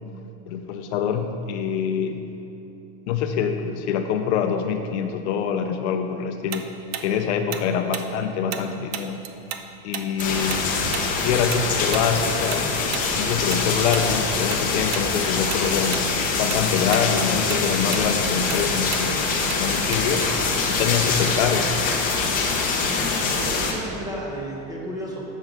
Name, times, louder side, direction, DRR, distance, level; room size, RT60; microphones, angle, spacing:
voice 1, 0.5-2.2 3.1-6.7 7.0-9.2 9.8-10.6 11.2-12.7 13.2-16.1 16.4-20.2 20.7-21.7, left 7 dB, 60° left, 6 dB, 0.5 m, -25 dB
Tick-tock, 6.5-9.7 9.9-14.6 14.9-15.1 15.5-16.1 16.4-20.3, right 9 dB, 45° right, 0.4 m, -34 dB
sound 1, 10.2-23.7, left 4 dB, 20° left, 0.6 m, -24 dB
voice 2, 22.9-25.2, equal, 10° right, -4 dB, 0.9 m, -33 dB
7.3 x 6.3 x 3.8 m, 2.9 s
supercardioid pair, 155°, 39 cm